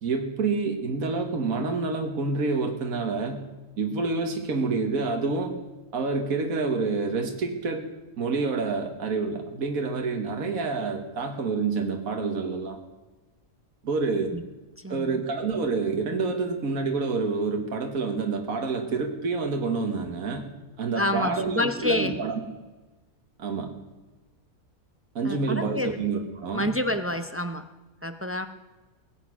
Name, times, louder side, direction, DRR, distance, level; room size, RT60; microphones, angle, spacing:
voice 1, 0.0-3.4 3.8-5.5 5.9-7.9 8.2-12.8 13.8-14.3 14.9-20.5 20.8-22.4 23.4-23.7 25.2-26.7, right 4 dB, 70° right, 3 dB, 1.9 m, -28 dB
voice 2, 14.8-15.2 21.0-22.2 25.2-26.0 26.5-27.6 28.0-28.5, left 1 dB, 20° right, 7 dB, 0.3 m, -28 dB
21.0 x 8.3 x 6.1 m, 1.2 s
omnidirectional pair, 1.5 m